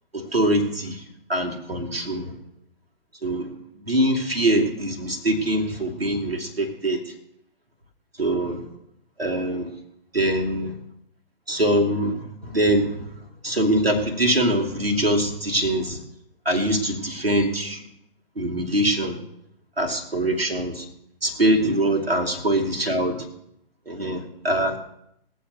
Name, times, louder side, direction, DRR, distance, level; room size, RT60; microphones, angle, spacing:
voice 1, 0.1-1.0 1.3-2.3 3.2-3.5 3.9-7.1 8.2-8.6 9.2-9.7 10.1-10.7 11.5-13.0 13.4-16.0 16.4-17.8 18.4-19.2 19.8-20.8 21.2-23.2 23.9-24.8, right 1 dB, 80° right, 1 dB, 2.5 m, -23 dB
20.5 x 7.4 x 5.1 m, 0.75 s
figure-of-eight pair, 125°, 30 cm